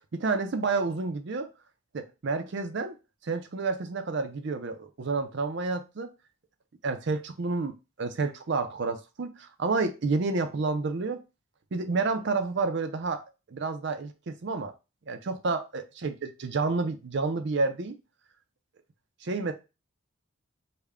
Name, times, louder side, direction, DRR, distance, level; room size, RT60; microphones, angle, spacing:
voice 1, 0.1-1.5 1.9-3.0 3.2-6.1 6.8-7.7 8.0-11.2 11.7-13.2 13.5-14.7 15.1-18.0 19.2-19.5, right 3 dB, 55° right, 0.5 m, -29 dB
3.3 x 2.2 x 3.5 m
head